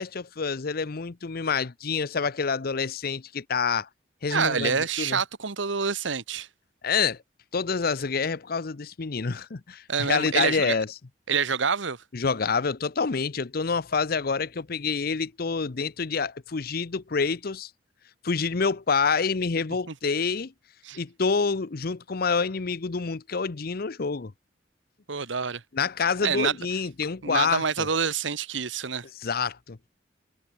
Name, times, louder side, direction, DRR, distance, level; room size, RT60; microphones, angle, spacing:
voice 1, 0.0-3.9 4.2-5.2 6.8-7.2 7.5-10.9 12.1-17.7 18.2-20.5 21.0-24.3 25.7-27.9 29.2-29.8, left 5 dB, 55° left, 0.7 m, -27 dB
voice 2, 4.3-6.5 9.9-10.8 11.3-12.0 19.9-20.0 20.8-21.0 25.1-25.6 26.2-26.5 27.2-29.0, right 6 dB, 85° right, 1.3 m, -27 dB
head